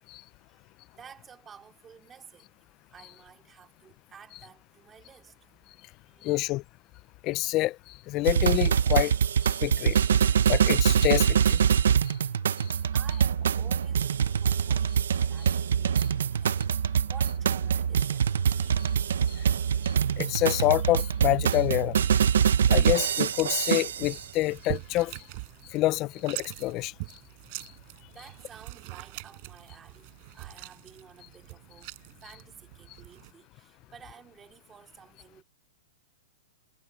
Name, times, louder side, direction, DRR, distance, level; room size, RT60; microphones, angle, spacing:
voice 1, 0.9-2.5 2.9-5.4 6.1-6.5 12.9-15.0 15.3-18.3 22.3-22.4 28.1-31.9 32.2-35.4, right 7 dB, 15° right, 4.3 m, -52 dB
voice 2, 6.2-6.6 7.2-7.8 8.1-9.1 9.6-10.0 10.5-11.6 12.6-12.7 18.8-18.9 20.2-22.0 22.7-25.1 25.7-26.9, left 18 dB, 30° left, 0.6 m, -27 dB
sound 1, 8.2-24.2, right 8 dB, 85° right, 0.9 m, -24 dB
sound 2, 22.5-33.3, right 28 dB, 40° right, 7.7 m, -43 dB
hypercardioid pair, 155°, 0 cm